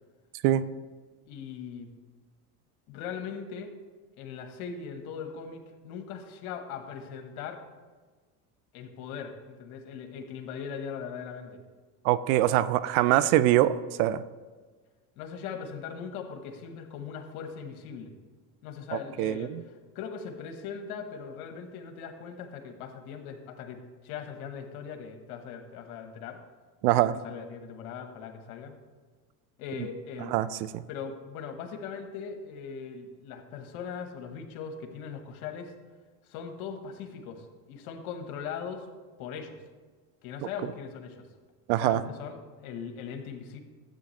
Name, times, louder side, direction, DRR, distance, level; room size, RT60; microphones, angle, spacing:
voice 1, 1.3-1.9 2.9-3.7 4.2-7.6 8.7-11.6 15.2-18.1 18.6-26.4 27.2-28.8 29.6-30.4 30.9-35.7 36.3-38.9 39.2-39.6 40.2-41.3 41.8-43.6, left 6 dB, 80° left, 6 dB, 1.4 m, -40 dB
voice 2, 12.0-13.7 14.0-14.2 19.2-19.6 26.8-27.2 30.3-30.5 41.7-42.0, right 14 dB, 75° right, 16 dB, 0.6 m, -23 dB
13.0 x 8.5 x 3.2 m, 1.4 s
supercardioid pair, 85°, 44 cm